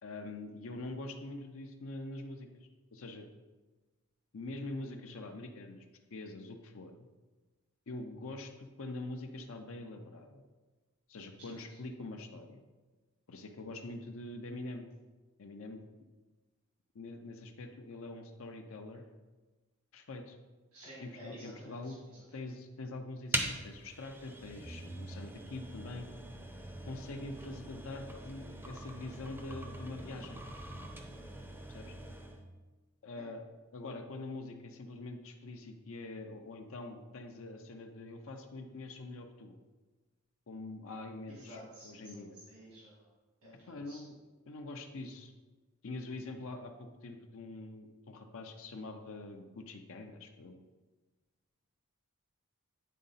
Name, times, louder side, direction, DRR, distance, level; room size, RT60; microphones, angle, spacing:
voice 1, 0.0-3.3 4.3-5.9 6.1-7.1 7.9-10.4 11.1-12.6 13.3-14.9 15.4-15.9 16.9-19.0 19.9-20.4 21.0-22.0 22.3-26.1 26.8-30.5 31.7-31.9 33.0-33.4 33.7-39.6 40.5-42.4 43.7-44.1 44.5-45.3 45.8-50.6, left 2 dB, 60° left, 4 dB, 0.6 m, -44 dB
voice 2, 11.4-11.8 20.7-22.2 33.2-33.3 41.3-43.1 43.4-44.0, equal, 80° right, -6 dB, 1.8 m, -52 dB
sound 1, 23.3-32.4, right 1 dB, 10° right, 0.6 m, -42 dB
9.3 x 3.7 x 4.1 m, 1.2 s
head